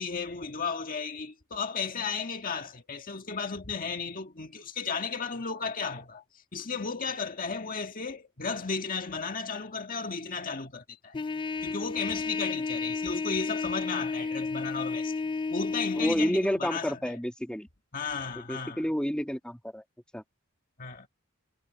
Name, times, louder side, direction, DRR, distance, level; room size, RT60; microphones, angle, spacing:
voice 1, 0.0-6.2 6.5-11.2 11.6-15.2 15.5-17.2 17.9-18.9 20.8-21.1, left 5 dB, 40° left, 1.7 m, -34 dB
Trumpet, 11.1-16.2, left 4 dB, 25° left, 0.3 m, -32 dB
voice 2, 16.0-17.7 18.5-19.8 20.1-20.2, equal, 5° left, 2.0 m, -29 dB
head